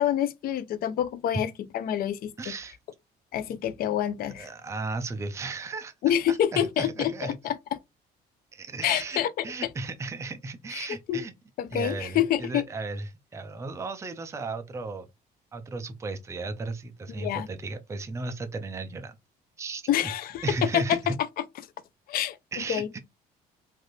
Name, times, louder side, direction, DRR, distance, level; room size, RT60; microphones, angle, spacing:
voice 1, 0.0-2.3 3.3-4.5 6.0-7.5 8.8-9.4 10.7-11.2 11.6-12.6 17.2-17.5 19.9-21.1 22.1-22.9, left 10 dB, 60° left, 0.5 m, -27 dB
voice 2, 2.4-2.8 4.3-5.9 6.3-7.3 8.5-11.3 11.7-15.1 15.5-19.1 19.6-19.9 20.4-21.2 22.5-23.0, right 3 dB, 15° right, 0.5 m, -35 dB
3.2 x 2.5 x 2.6 m
cardioid pair, 110°, 17 cm